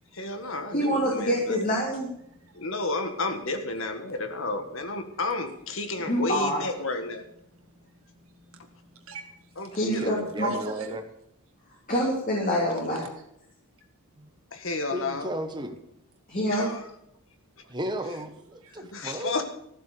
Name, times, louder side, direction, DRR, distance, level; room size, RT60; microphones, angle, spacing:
voice 1, 0.1-1.7 2.5-7.2 9.6-10.1 14.5-15.3 16.5-16.8 18.8-19.4, left 2 dB, 60° left, 6 dB, 1.6 m, -32 dB
voice 2, 0.7-2.1 6.0-6.6 9.7-10.5 11.9-13.0 16.3-16.7, equal, 35° left, -3 dB, 2.8 m, -26 dB
voice 3, 2.3-2.7 5.9-6.1 7.5-9.5 9.9-10.0 10.4-11.0 12.7-12.8 17.6-17.7 18.6-18.7, right 3 dB, 70° right, 4 dB, 2.0 m, -45 dB
voice 4, 9.9-11.0 14.2-14.3 14.9-15.7 17.7-19.3, right 1 dB, 20° right, 7 dB, 1.1 m, -34 dB
14.0 x 7.6 x 6.9 m, 0.76 s
head